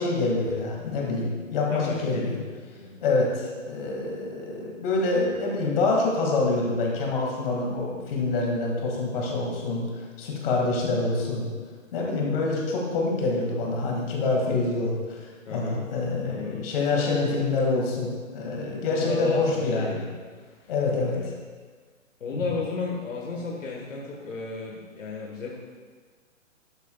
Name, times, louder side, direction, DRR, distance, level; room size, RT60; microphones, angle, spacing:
voice 1, 0.0-2.4 3.0-11.5 11.9-15.3 15.5-20.0 20.7-21.2 22.3-22.4, left 3 dB, 45° left, -1 dB, 2.3 m, -26 dB
voice 2, 1.7-2.3 2.8-3.0 15.5-15.8 16.2-16.7 18.9-20.2 20.9-21.3 22.2-25.6, left 4 dB, 70° left, -2 dB, 1.6 m, -34 dB
12.5 x 7.9 x 2.4 m, 1.5 s
hypercardioid pair, 140°, 40 cm